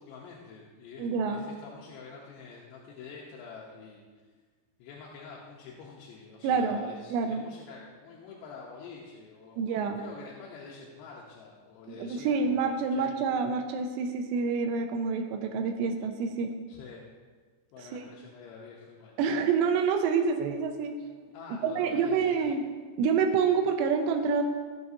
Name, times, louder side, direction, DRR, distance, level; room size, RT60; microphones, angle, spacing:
voice 1, 0.0-4.0 4.8-13.2 16.7-17.0 17.7-19.2 21.3-22.6, left 5 dB, 85° left, -3 dB, 3.1 m, -47 dB
voice 2, 1.0-1.4 6.4-6.8 7.1-7.4 9.6-10.0 11.9-16.5 17.8-18.1 19.2-21.0 21.6-22.6 23.0-24.4, right 5 dB, 90° right, 5 dB, 2.9 m, -27 dB
16.0 x 7.2 x 2.7 m, 1.5 s
omnidirectional pair, 4.9 m